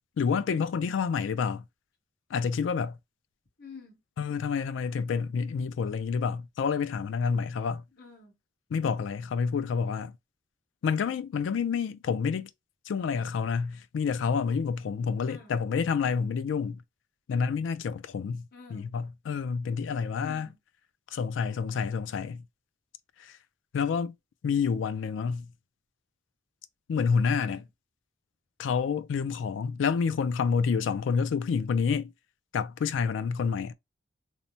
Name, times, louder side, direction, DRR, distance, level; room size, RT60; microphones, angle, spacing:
voice 1, 0.2-1.6 2.3-3.0 4.2-7.8 8.7-10.1 10.8-12.5 12.9-16.8 17.3-18.5 18.7-20.5 21.1-22.4 23.2-23.4 23.7-24.1 24.4-25.5 26.9-27.6 28.6-32.1 32.5-33.7, left 6 dB, 75° left, 0.3 m, -28 dB
voice 2, 3.6-4.0 7.9-8.4 15.3-15.5 18.5-18.9 20.2-20.6 27.4-27.7, left 4 dB, 55° left, 1.0 m, -49 dB
3.1 x 2.0 x 2.6 m
head